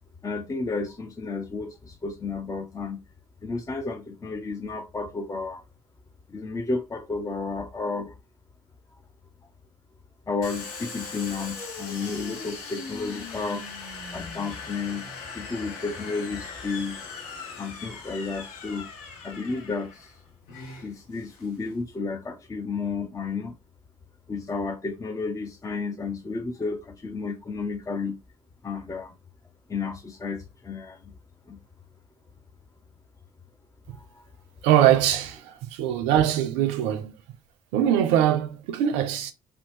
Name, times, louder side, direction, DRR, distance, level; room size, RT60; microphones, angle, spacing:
voice 1, 0.2-3.0 3.4-5.6 6.3-8.2 10.3-13.6 14.1-17.0 17.6-18.9 19.2-20.1 20.8-23.5 24.3-28.2 28.6-29.1 29.7-31.0 31.5-31.6 33.9-34.2, left 4 dB, 20° left, 0.4 m, -32 dB
Domestic sounds home sounds, 10.4-21.8, left 4 dB, 75° left, 0.7 m, -40 dB
voice 2, 34.6-37.1 37.7-39.3, right 11 dB, 70° right, 0.4 m, -22 dB
2.7 x 2.1 x 3.0 m
hypercardioid pair, 50°, 19 cm